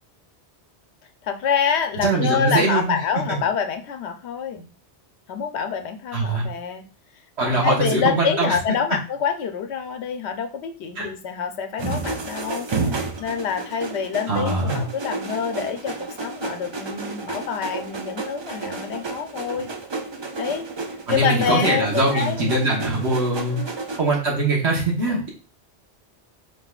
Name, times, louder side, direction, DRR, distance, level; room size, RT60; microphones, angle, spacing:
voice 1, 1.2-4.7 5.3-6.8 7.4-19.7 20.4-20.7 21.1-22.8 23.5-23.7, left 7 dB, 75° left, 7 dB, 0.9 m, -26 dB
voice 2, 2.0-3.0 6.1-6.4 7.4-8.5 10.9-11.1 14.3-14.8 21.1-23.6 24.0-25.3, right 2 dB, 75° right, -4 dB, 1.5 m, -22 dB
sound 1, 11.8-24.0, right 3 dB, 45° right, 0.3 m, -31 dB
4.6 x 3.7 x 2.3 m, 0.35 s
omnidirectional pair, 1.1 m